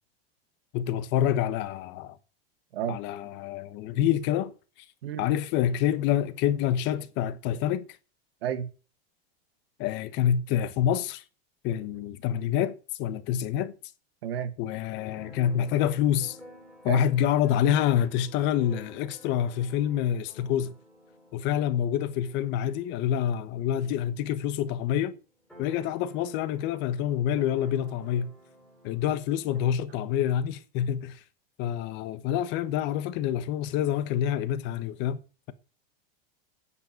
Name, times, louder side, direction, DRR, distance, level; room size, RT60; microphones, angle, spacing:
voice 1, 0.7-2.2 2.9-4.5 5.2-7.8 9.8-11.2 11.6-13.7 14.6-16.4 16.8-20.7 21.3-25.1 25.6-28.3 28.8-31.2 31.6-35.2, left 10 dB, 40° left, 1.2 m, -27 dB
voice 2, 14.2-14.5 16.9-17.0, right 9 dB, 80° right, 2.4 m, -31 dB
Keyboard (musical), 15.0-24.6 24.9-25.0 25.2-29.6, left 1 dB, ahead, 6.1 m, -53 dB
9.6 x 8.0 x 9.1 m
supercardioid pair, 155°, 30 cm